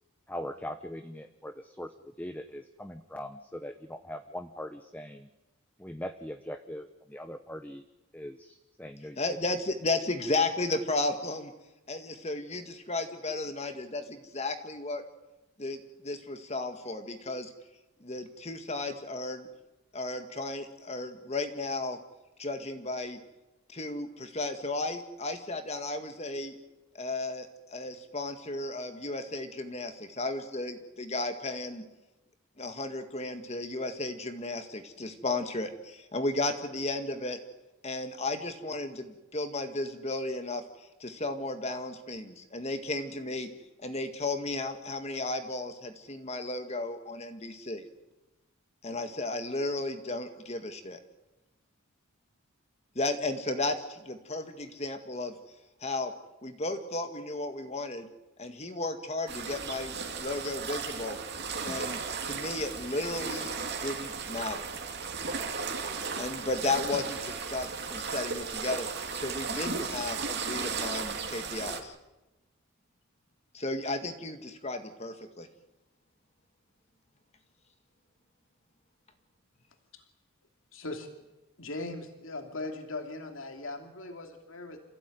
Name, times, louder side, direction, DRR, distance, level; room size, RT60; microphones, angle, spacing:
voice 1, 0.3-5.3 5.8-7.8 8.1-9.4, left 1 dB, 10° left, 8 dB, 0.9 m, -41 dB
voice 2, 9.2-11.5 11.9-15.0 15.6-17.5 18.0-19.5 19.9-22.0 22.4-23.2 23.7-26.6 26.9-31.8 32.6-37.4 37.8-43.5 43.8-47.8 48.8-51.0 52.9-55.3 55.8-56.1 56.4-58.1 58.4-61.2 61.6-64.7 66.1-68.9 69.1-71.9 73.5-75.5, left 2 dB, 30° left, 7 dB, 1.8 m, -34 dB
sound 1, 59.3-71.8, right 5 dB, 50° right, 2.8 m, -35 dB
voice 3, 80.7-81.1 81.6-84.8, left 2 dB, 65° left, 5 dB, 2.8 m, -39 dB
28.0 x 16.0 x 9.3 m, 1.0 s
head